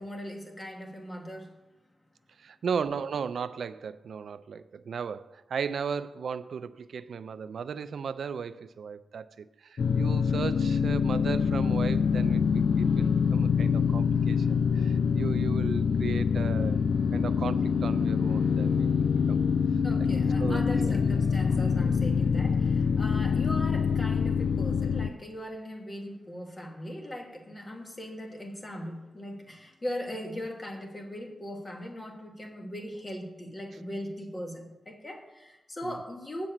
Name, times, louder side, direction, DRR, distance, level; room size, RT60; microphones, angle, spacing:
voice 1, 0.0-1.6 19.8-36.5, equal, 25° left, 3 dB, 1.3 m, -39 dB
voice 2, 2.4-19.4 20.0-20.1 20.4-20.9 23.1-23.3 35.8-36.0, right 6 dB, 75° right, 14 dB, 0.4 m, -36 dB
sound 1, 9.8-25.1, left 6 dB, 70° left, 0.3 m, -25 dB
7.2 x 6.1 x 7.8 m, 1.0 s
wide cardioid pair, 125°, 0 cm